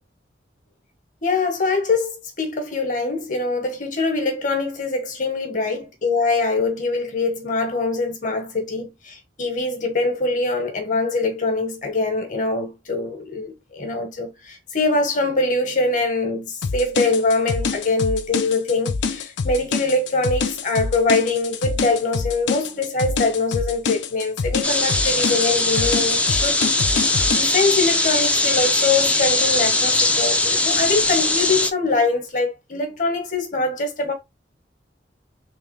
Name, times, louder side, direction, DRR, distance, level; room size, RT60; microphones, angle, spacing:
voice 1, 1.2-34.1, left 3 dB, 45° left, 1.3 m, -23 dB
sound 1, 16.6-27.5, left 5 dB, 75° left, 0.5 m, -26 dB
sound 2, 24.6-31.7, left 2 dB, 5° left, 0.4 m, -20 dB
3.6 x 3.0 x 3.2 m
head